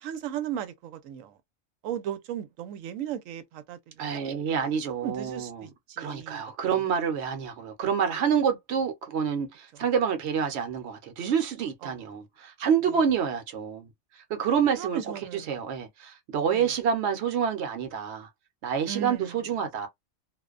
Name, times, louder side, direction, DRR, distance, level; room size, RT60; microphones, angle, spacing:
voice 1, 0.0-1.3 1.8-6.4 6.7-6.8 11.8-11.9 14.8-15.6 16.5-16.7 18.8-19.4, right 10 dB, 85° right, 1.0 m, -36 dB
voice 2, 4.0-5.7 6.0-13.9 14.3-15.0 15.3-18.3 18.6-19.9, right 7 dB, 60° right, 0.9 m, -27 dB
2.4 x 2.1 x 2.4 m
omnidirectional pair, 1.3 m